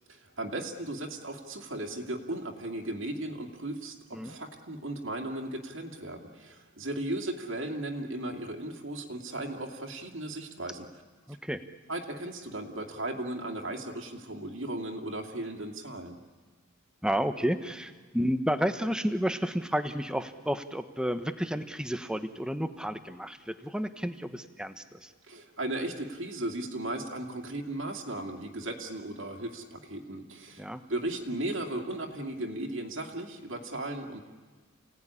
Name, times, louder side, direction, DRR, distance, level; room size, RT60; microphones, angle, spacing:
voice 1, 0.1-10.9 11.9-16.2 25.3-34.2, right 1 dB, 60° right, 2 dB, 2.5 m, -36 dB
voice 2, 11.3-11.6 17.0-25.1 30.6-30.8, equal, 5° right, 9 dB, 1.0 m, -31 dB
29.5 x 17.5 x 10.0 m, 1.4 s
head